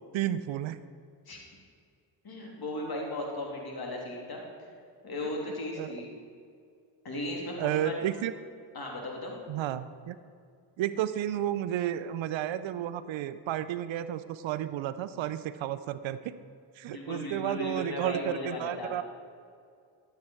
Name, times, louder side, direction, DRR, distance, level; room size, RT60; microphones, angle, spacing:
voice 1, 0.1-0.8 5.7-5.9 7.6-8.3 9.5-10.2 10.8-16.4 16.8-19.0, right 11 dB, 75° right, 14 dB, 0.6 m, -32 dB
voice 2, 2.2-4.4 4.7-6.1 7.0-7.9 8.7-9.5 16.8-18.9, left 1 dB, 50° left, -1 dB, 3.0 m, -36 dB
12.5 x 7.8 x 4.5 m, 2.3 s
supercardioid pair, 55°, 47 cm